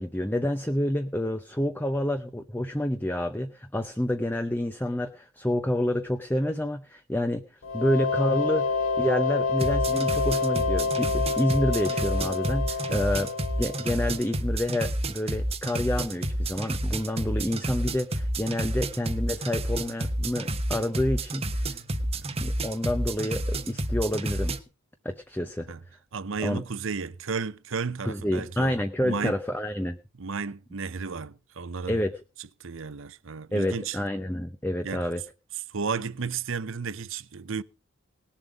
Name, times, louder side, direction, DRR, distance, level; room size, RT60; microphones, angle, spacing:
voice 1, 0.0-7.4 7.7-13.3 13.6-21.8 22.4-24.5 25.0-25.7 26.4-26.6 28.0-30.0 31.9-32.1 33.5-35.2, left 1 dB, 10° left, 0.7 m, -28 dB
sound 1, 7.6-14.2, left 4 dB, 65° left, 1.1 m, -28 dB
sound 2, 9.6-24.6, right 1 dB, 30° right, 1.0 m, -30 dB
voice 2, 26.1-28.8 29.0-29.4 30.2-32.0 32.6-34.0 34.8-35.0 35.7-37.6, right 5 dB, 65° right, 0.7 m, -33 dB
19.0 x 7.3 x 5.2 m
head